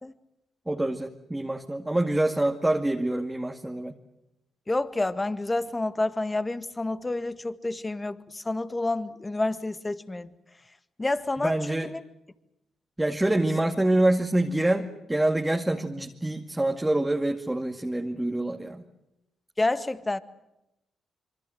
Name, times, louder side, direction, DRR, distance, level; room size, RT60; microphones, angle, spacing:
voice 1, 0.7-3.9 11.4-11.9 13.0-18.8, right 1 dB, 15° right, 3 dB, 2.2 m, -26 dB
voice 2, 4.7-10.3 11.0-12.0 19.6-20.2, left 2 dB, 25° left, 12 dB, 1.8 m, -29 dB
26.0 x 24.5 x 7.8 m, 0.88 s
hypercardioid pair, 45°, 0 cm